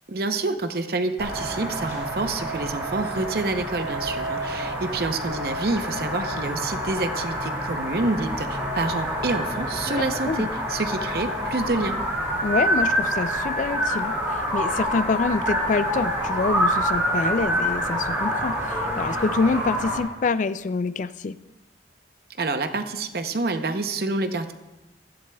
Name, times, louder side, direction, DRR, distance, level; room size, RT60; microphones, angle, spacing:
voice 1, 0.1-12.0 22.4-24.5, right 3 dB, 60° right, 8 dB, 0.7 m, -27 dB
sound 1, 1.2-20.0, equal, 15° right, 2.9 m, -27 dB
voice 2, 10.0-10.5 12.4-21.4, left 4 dB, 45° left, 14 dB, 0.3 m, -26 dB
15.5 x 11.5 x 2.3 m, 1.0 s
head